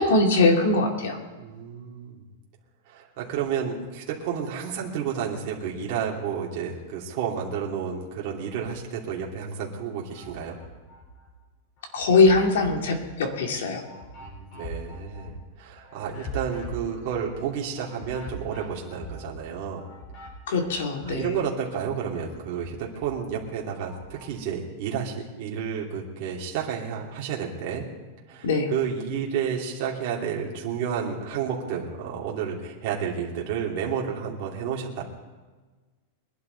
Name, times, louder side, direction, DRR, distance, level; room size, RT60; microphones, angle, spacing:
voice 1, 0.0-1.2 11.9-13.9 20.5-21.4 28.4-28.7, left 3 dB, 80° left, 3 dB, 2.7 m, -21 dB
voice 2, 1.4-2.2 2.9-10.6 14.2-19.8 21.1-27.8 28.3-35.0, right 7 dB, 40° right, -3 dB, 2.8 m, -31 dB
sound 1, 8.5-9.3 9.8-11.4 11.8-21.5 21.8-24.4, right 1 dB, 35° left, 3.8 m, -43 dB
22.5 x 11.5 x 4.0 m, 1.3 s
supercardioid pair, 170°, 0 cm